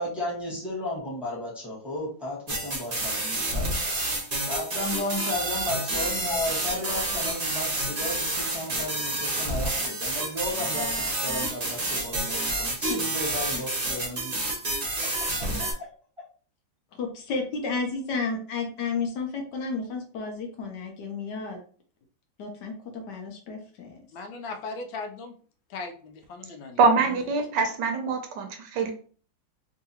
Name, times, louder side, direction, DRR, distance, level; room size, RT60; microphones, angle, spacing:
voice 1, 0.0-3.8 4.5-14.4 15.0-15.9, left 1 dB, ahead, -7 dB, 0.9 m, -34 dB
sound 1, 2.5-15.7, right 2 dB, 45° right, 0.5 m, -29 dB
voice 2, 17.0-21.6 22.4-24.1, left 4 dB, 70° left, 2 dB, 1.3 m, -32 dB
voice 3, 24.1-25.3 25.7-26.9, left 3 dB, 85° left, 4 dB, 1.4 m, -38 dB
voice 4, 26.8-28.9, right 4 dB, 75° right, 5 dB, 1.2 m, -24 dB
3.7 x 2.6 x 2.8 m, 0.43 s
omnidirectional pair, 2.1 m